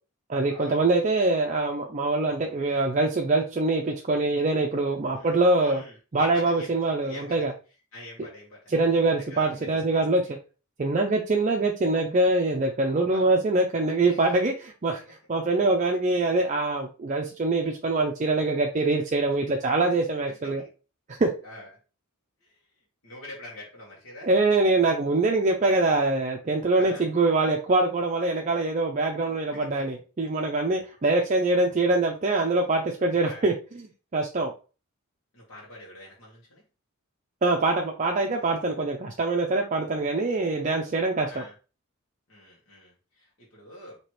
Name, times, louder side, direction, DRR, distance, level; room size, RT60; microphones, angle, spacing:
voice 1, 0.3-5.8 6.1-7.5 8.7-10.2 10.8-20.6 21.2-21.3 24.3-33.5 34.1-34.5 37.4-41.4, right 2 dB, 35° right, 2 dB, 0.5 m, -24 dB
voice 2, 5.1-6.7 7.0-7.5 7.9-8.6 8.9-10.0 12.8-13.2 14.0-14.3 20.3-20.7 21.4-21.7 22.4-22.6 23.0-24.3 26.7-27.0 29.5-29.9 33.2-33.5 35.3-36.6 38.4-38.5 41.3-41.5 42.3-44.0, left 1 dB, 70° left, -5 dB, 1.4 m, -45 dB
4.5 x 2.9 x 3.0 m, 0.34 s
head